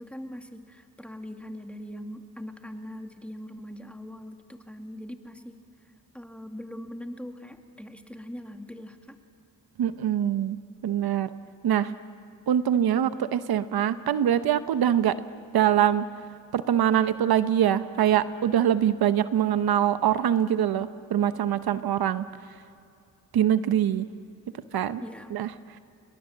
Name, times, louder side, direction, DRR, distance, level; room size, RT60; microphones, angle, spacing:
voice 1, 0.0-9.2 25.0-25.4, equal, 5° left, 5 dB, 2.2 m, -41 dB
voice 2, 9.8-10.6 10.8-11.3 11.6-11.9 12.5-15.2 15.5-16.0 16.5-22.2 23.3-24.1 24.7-25.0 25.3-25.5, right 10 dB, 85° right, 12 dB, 0.9 m, -23 dB
29.5 x 23.0 x 7.4 m, 2.5 s
cardioid pair, 85°, 36 cm